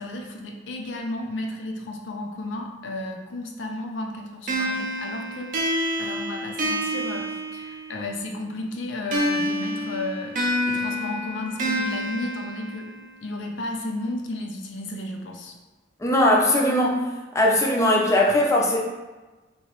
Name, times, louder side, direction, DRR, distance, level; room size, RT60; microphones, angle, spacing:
voice 1, 0.0-10.4 10.6-12.9 13.2-15.6, left 2 dB, 90° left, 2 dB, 0.5 m, -33 dB
sound 1, 4.5-8.1 9.1-13.1, equal, 45° right, 0.5 m, -28 dB
voice 2, 16.0-17.0 17.3-18.8, left 1 dB, 15° left, -2 dB, 0.5 m, -19 dB
3.0 x 2.8 x 3.0 m, 1.2 s
head